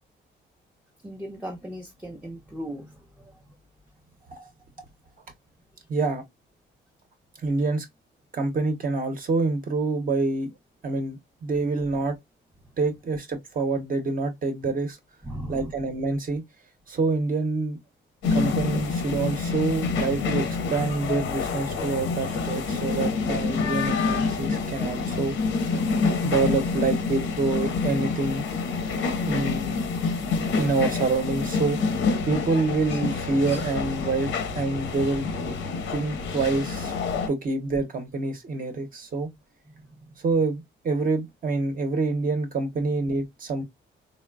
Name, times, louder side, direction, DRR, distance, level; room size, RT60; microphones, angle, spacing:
voice 1, 1.0-3.4 14.6-14.7 15.2-15.7 39.7-40.1, equal, 5° right, 0.5 m, -38 dB
voice 2, 5.9-6.2 7.4-7.9 8.3-10.5 10.8-12.2 12.8-15.0 15.5-16.4 16.9-17.8 18.3-25.3 26.2-28.4 29.3-29.8 30.0-31.8 32.2-35.3 35.9-36.9 37.3-39.3 40.2-43.6, right 3 dB, 45° right, 0.8 m, -26 dB
sound 1, 18.2-37.3, left 4 dB, 85° left, 0.8 m, -27 dB
3.1 x 2.0 x 2.3 m
cardioid pair, 90°, 20 cm